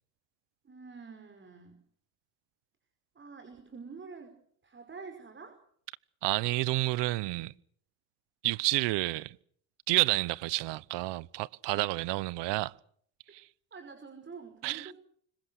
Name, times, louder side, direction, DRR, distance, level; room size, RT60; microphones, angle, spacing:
voice 1, 0.6-1.8 3.2-4.4 4.6-5.6 13.7-14.9, right 4 dB, 25° right, 5.5 m, -47 dB
voice 2, 6.2-7.5 8.4-9.4 9.9-12.7 13.3-13.4 14.6-14.9, right 20 dB, 70° right, 0.9 m, -30 dB
25.5 x 22.5 x 6.5 m
cardioid pair, 105°, 43 cm